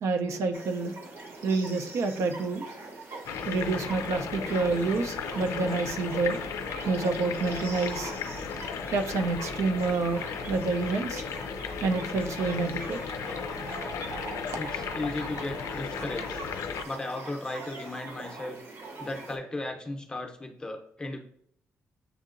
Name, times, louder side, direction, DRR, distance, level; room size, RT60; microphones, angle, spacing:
voice 1, 0.0-0.9 1.4-2.6 3.1-6.4 6.9-8.1 8.9-11.2 11.8-13.2, right 3 dB, 70° right, 7 dB, 0.5 m, -28 dB
sound 1, 0.5-19.4, right 3 dB, 55° right, 0.9 m, -43 dB
sound 2, 3.2-16.8, left 6 dB, 80° left, 0.4 m, -35 dB
voice 2, 14.6-16.4 16.8-18.6 19.0-21.2, left 2 dB, 15° left, 3 dB, 0.6 m, -36 dB
7.0 x 2.8 x 2.5 m, 0.65 s
cardioid pair, 125°, 5 cm